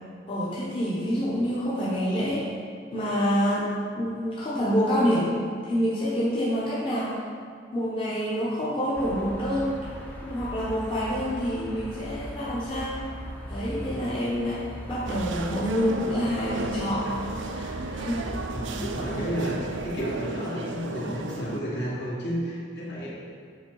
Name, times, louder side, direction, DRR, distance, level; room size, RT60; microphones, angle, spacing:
voice 1, 0.3-2.5 2.9-3.7 3.9-5.4 5.6-7.2 7.7-9.7 10.2-13.0 13.5-17.1 17.5-18.3, equal, 30° left, -8 dB, 0.9 m, -27 dB
medium street with some crowd, 8.9-20.0, equal, 10° left, 0.6 m, -39 dB
sound 1, 15.1-21.6, right 3 dB, 80° right, 0.5 m, -35 dB
voice 2, 18.5-23.1, equal, 60° left, -6 dB, 1.7 m, -31 dB
7.2 x 4.4 x 4.7 m, 2.1 s
head